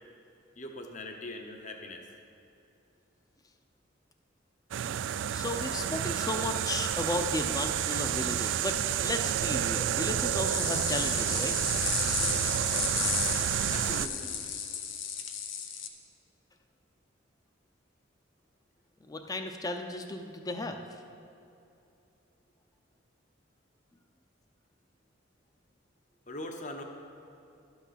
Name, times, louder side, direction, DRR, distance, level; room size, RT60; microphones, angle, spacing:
voice 1, 0.6-2.1 13.7-14.4 26.3-26.8, left 1 dB, 40° left, 4 dB, 0.9 m, -41 dB
sound 1, 4.7-14.1, right 10 dB, 70° right, 0.3 m, -30 dB
voice 2, 5.3-11.5 13.0-13.1 19.1-20.8, left 2 dB, 20° left, 6 dB, 0.6 m, -34 dB
sound 2, 10.4-15.9, left 8 dB, 80° left, 0.8 m, -34 dB
11.5 x 5.8 x 5.8 m, 2.7 s
head